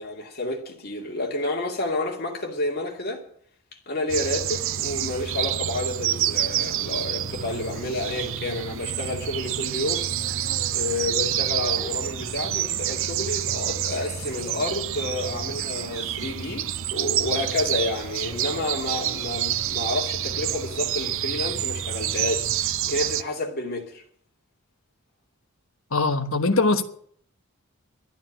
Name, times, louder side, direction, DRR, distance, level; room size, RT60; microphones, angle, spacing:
voice 1, 0.0-3.2 3.9-10.1 10.7-24.0, left 2 dB, 45° left, 2.6 m, -30 dB
sound 1, 4.1-23.2, right 11 dB, 60° right, 0.5 m, -28 dB
Acoustic guitar, 6.5-22.5, equal, 15° right, 6.6 m, -45 dB
Meow, 9.4-11.0 11.7-11.9 12.8-12.9 13.2-13.5 14.5-14.6 15.0-15.5 16.1-16.8 17.6-18.4 19.0-19.7, right 1 dB, 10° left, 7.5 m, -48 dB
voice 2, 25.9-26.8, left 3 dB, 65° left, 1.2 m, -21 dB
12.0 x 9.4 x 8.9 m
head